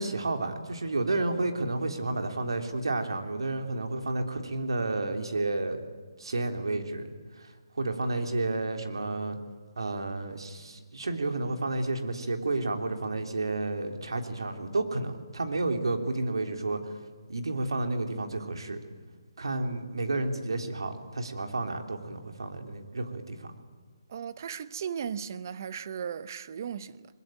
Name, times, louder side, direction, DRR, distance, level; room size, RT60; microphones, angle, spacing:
voice 1, 0.0-5.8 6.2-7.1 7.4-9.4 9.8-16.9 17.3-18.8 19.4-23.5, right 2 dB, 80° right, 3.3 m, -31 dB
voice 2, 24.1-27.1, right 7 dB, 45° right, 0.9 m, -36 dB
21.5 x 21.5 x 9.0 m
hypercardioid pair, 155°, 2 cm